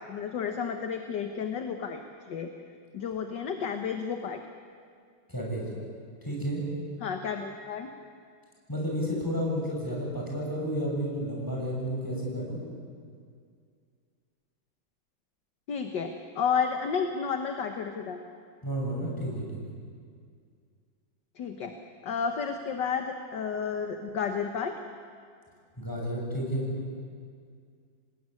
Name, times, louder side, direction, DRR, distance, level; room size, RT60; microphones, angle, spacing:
voice 1, 0.0-2.0 2.3-2.5 2.9-4.4 7.0-7.9 15.7-18.2 21.4-21.7 22.0-24.7, left 6 dB, 65° left, 6 dB, 1.8 m, -31 dB
voice 2, 5.3-5.7 6.2-6.6 8.7-12.6 18.6-19.6 25.8-26.7, equal, 10° left, -3 dB, 6.8 m, -31 dB
26.5 x 19.0 x 9.7 m, 2.2 s
omnidirectional pair, 2.2 m